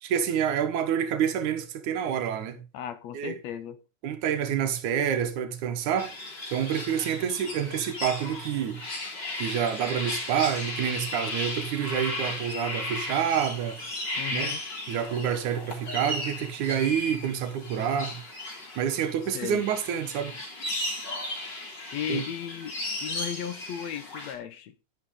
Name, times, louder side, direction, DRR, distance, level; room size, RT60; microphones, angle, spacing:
voice 1, 0.0-2.6 3.1-3.3 4.0-6.1 6.5-8.8 9.4-13.8 14.3-14.5 14.9-18.2 18.8-20.3 22.1-22.2, right 8 dB, 75° right, 2.9 m, -28 dB
voice 2, 2.7-3.8 14.2-14.6 19.3-19.7 21.9-22.7 23.0-24.7, left 9 dB, 70° left, 2.0 m, -35 dB
sound 1, 6.0-24.3, left 2 dB, 35° left, 3.9 m, -35 dB
11.5 x 10.5 x 3.8 m
omnidirectional pair, 3.5 m